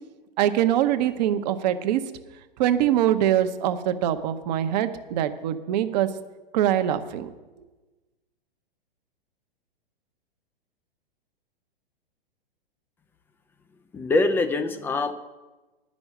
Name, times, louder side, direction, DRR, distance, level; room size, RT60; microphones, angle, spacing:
voice 1, 0.4-2.0 2.6-6.1 6.5-7.3, right 11 dB, 45° right, 10 dB, 0.9 m, -23 dB
voice 2, 13.9-15.1, left 2 dB, 5° left, 10 dB, 0.4 m, -23 dB
10.5 x 6.3 x 9.1 m, 1.2 s
figure-of-eight pair, 105°, 29 cm